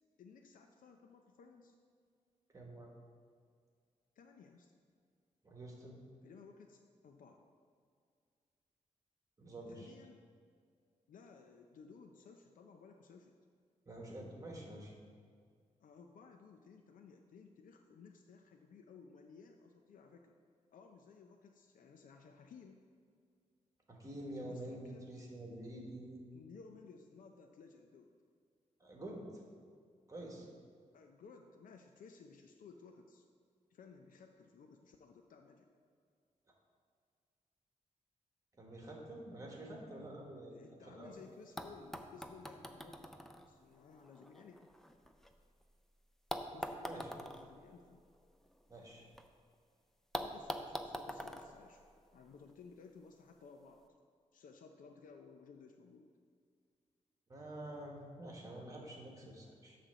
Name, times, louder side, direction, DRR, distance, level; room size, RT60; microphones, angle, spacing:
voice 1, 0.2-1.7 4.2-4.7 6.2-7.4 9.7-10.2 11.1-13.4 15.8-20.4 20.7-22.8 24.4-25.1 26.3-28.1 30.9-33.2 33.7-35.7 40.5-43.1 43.5-44.7 46.5-48.0 50.2-51.9 52.1-53.8 54.3-56.1, left 5 dB, 90° left, 4 dB, 0.5 m, -57 dB
voice 2, 2.5-2.9 5.4-6.0 9.4-9.9 13.9-14.9 23.9-26.2 28.8-29.3 30.1-30.5 38.6-40.5 40.8-41.1 46.8-47.1 48.7-49.0 57.3-59.8, right 1 dB, 25° right, -1 dB, 1.5 m, -48 dB
sound 1, 41.1-41.2 41.6-45.6 46.3-49.3 49.5-49.6 50.1-52.5 53.5-53.6, equal, 5° left, 0.4 m, -45 dB
9.7 x 3.3 x 6.7 m, 2.1 s
wide cardioid pair, 140°, 14 cm